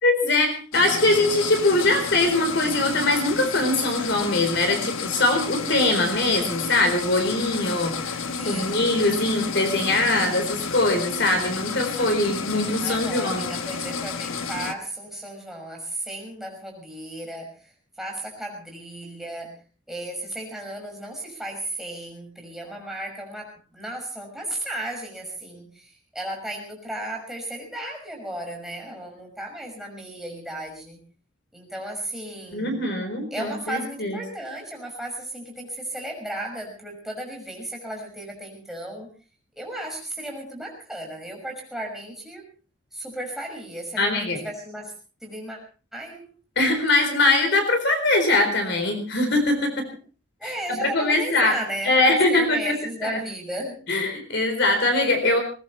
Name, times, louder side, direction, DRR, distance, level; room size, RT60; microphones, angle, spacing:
voice 1, 0.0-8.2 8.5-13.5 32.5-34.2 44.0-44.4 46.6-49.9 50.4-51.5 51.9-52.7 53.0-53.2 53.9-55.4, left 2 dB, 55° left, 6 dB, 4.2 m, -22 dB
sound 1, 0.7-14.7, left 5 dB, 85° left, 1.4 m, -31 dB
voice 2, 8.4-8.8 12.0-12.1 12.8-19.6 19.9-31.0 31.5-32.8 33.3-39.1 39.6-42.5 42.9-44.9 45.2-45.6 45.9-46.3 50.4-53.8, right 1 dB, ahead, 0 dB, 6.0 m, -35 dB
21.0 x 20.0 x 3.3 m, 0.37 s
head